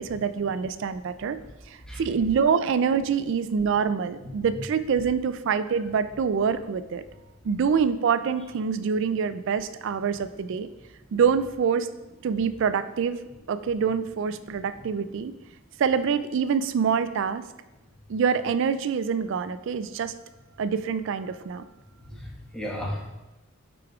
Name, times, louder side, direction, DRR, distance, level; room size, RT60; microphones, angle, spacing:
voice 1, 0.0-1.4 1.7-7.0 7.4-10.7 11.1-11.9 12.2-13.2 13.5-15.3 15.8-17.4 18.1-20.1 20.6-21.6, right 6 dB, 60° right, 12 dB, 0.3 m, -25 dB
voice 2, 22.1-23.1, equal, 5° left, -5 dB, 1.3 m, -34 dB
7.9 x 5.0 x 2.4 m, 1.0 s
head